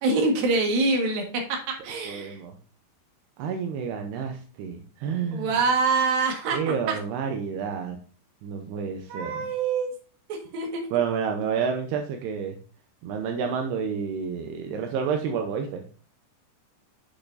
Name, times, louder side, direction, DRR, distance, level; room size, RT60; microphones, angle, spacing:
voice 1, 0.0-2.4 5.3-7.0 9.1-9.9 10.3-10.9, right 3 dB, 60° right, 1 dB, 3.1 m, -25 dB
voice 2, 2.1-2.6 3.4-5.5 6.5-8.0 8.4-9.5 10.9-12.6 13.0-15.8, right 6 dB, 85° right, 4 dB, 2.7 m, -29 dB
8.2 x 6.5 x 2.6 m, 0.40 s
omnidirectional pair, 5.0 m